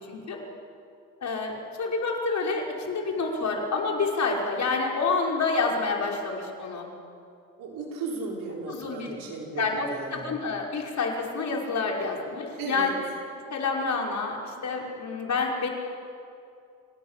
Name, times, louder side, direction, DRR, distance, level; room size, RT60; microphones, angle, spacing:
voice 1, 0.1-0.4 1.2-6.9 8.7-9.1 9.6-9.9 10.1-12.9 13.5-15.7, left 4 dB, 55° left, 0 dB, 5.7 m, -28 dB
voice 2, 7.6-10.3 12.6-12.9, right 3 dB, 75° right, -1 dB, 5.9 m, -35 dB
28.5 x 17.0 x 8.5 m, 2.4 s
hypercardioid pair, 55°, 34 cm